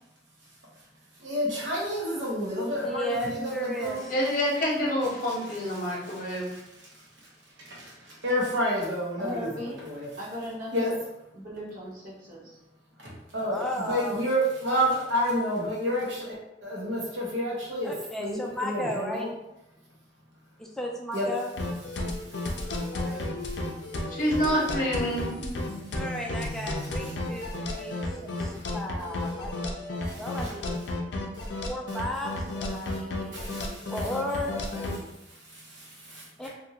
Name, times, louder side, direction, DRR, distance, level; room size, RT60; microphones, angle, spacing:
voice 1, 1.2-4.1 5.8-6.6 6.9-7.1 7.6-10.1 10.7-10.9 13.0-17.9 18.2-19.3 21.1-21.3 22.3-24.0 27.0-27.1 27.8-27.9 28.4-28.7 30.1-30.5 31.3-31.5 32.9-33.0 33.3-33.9 35.3-36.5, equal, 80° right, -4 dB, 1.0 m, -31 dB
voice 2, 2.8-4.0 13.5-14.2 17.8-19.3 20.6-21.5 22.9-23.2 25.9-29.7 30.2-30.7 31.6-35.1 36.4-36.5, left 1 dB, ahead, -1 dB, 0.4 m, -35 dB
voice 3, 4.1-6.5 24.1-25.3, equal, 45° left, -3 dB, 0.8 m, -27 dB
voice 4, 9.2-9.8 10.2-11.0 11.3-12.6, equal, 50° right, -5 dB, 1.0 m, -37 dB
sound 1, 21.6-35.0, left 2 dB, 65° left, 0.5 m, -33 dB
2.6 x 2.5 x 2.8 m, 0.89 s
head